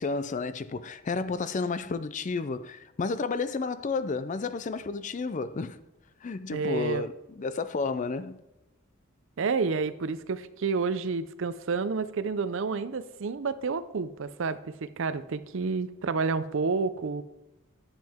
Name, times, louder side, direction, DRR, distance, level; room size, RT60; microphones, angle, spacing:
voice 1, 0.0-5.8 6.2-8.4, left 4 dB, 35° left, 0.4 m, -31 dB
voice 2, 6.5-7.1 9.4-17.2, right 4 dB, 60° right, 0.5 m, -30 dB
10.5 x 7.5 x 3.6 m
head